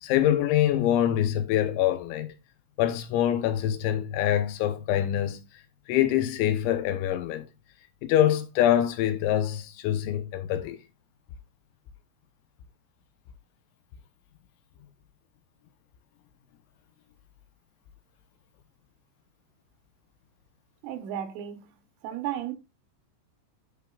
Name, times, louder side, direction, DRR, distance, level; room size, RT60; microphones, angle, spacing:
voice 1, 0.0-2.3 2.8-5.4 5.9-7.5 8.0-10.8, left 11 dB, 80° left, 3.1 m, -25 dB
voice 2, 20.8-21.7 22.0-22.5, right 10 dB, 85° right, 3.7 m, -34 dB
10.5 x 4.6 x 2.4 m
omnidirectional pair, 5.5 m